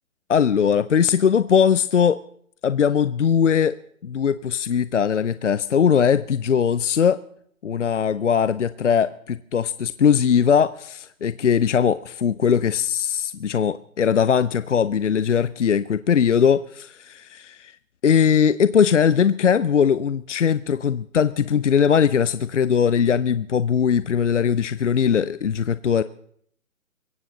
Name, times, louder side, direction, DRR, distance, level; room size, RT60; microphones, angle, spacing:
voice 1, 0.3-2.2 2.6-3.8 4.0-7.2 7.6-17.7 18.0-26.0, left 7 dB, 60° left, 15 dB, 0.6 m, -20 dB
22.0 x 16.5 x 3.9 m, 0.67 s
hypercardioid pair, 175°, 42 cm